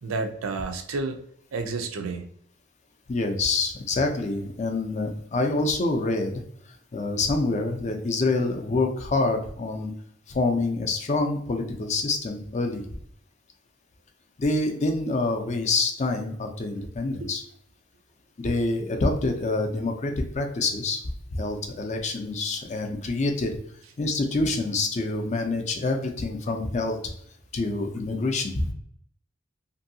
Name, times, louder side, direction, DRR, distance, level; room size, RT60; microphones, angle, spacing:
voice 1, 0.0-1.2 1.5-2.3 17.2-17.3, right 3 dB, 85° right, 5 dB, 0.5 m, -30 dB
voice 2, 3.1-6.3 6.9-9.9 10.3-12.9 14.4-17.4 18.4-21.0 21.3-23.5 24.0-27.0 27.5-28.7, left 3 dB, 35° left, 4 dB, 0.4 m, -26 dB
2.7 x 2.6 x 2.6 m, 0.67 s
head